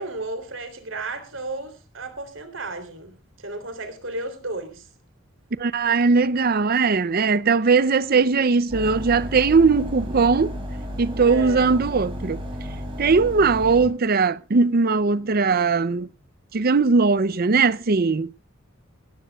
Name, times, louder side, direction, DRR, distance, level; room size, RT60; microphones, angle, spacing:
voice 1, 0.0-4.9 11.3-11.8, right 2 dB, 70° right, 3.5 m, -33 dB
voice 2, 5.6-10.6 11.0-12.4 13.0-16.1 16.5-18.4, right 4 dB, 50° right, 0.6 m, -19 dB
sound 1, 8.7-13.9, equal, 25° right, 6.9 m, -33 dB
19.5 x 17.0 x 2.4 m
head